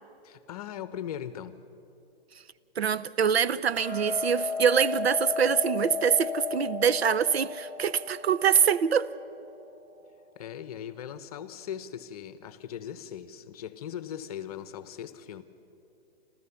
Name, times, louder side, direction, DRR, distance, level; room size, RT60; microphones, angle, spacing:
voice 1, 0.2-1.6 10.4-15.4, left 9 dB, 40° left, 0.9 m, -39 dB
voice 2, 2.8-9.1, right 7 dB, 80° right, 0.7 m, -24 dB
Hammer, 3.8-10.0, left 5 dB, 5° right, 1.2 m, -34 dB
27.0 x 14.0 x 7.1 m
hypercardioid pair, 150°, 31 cm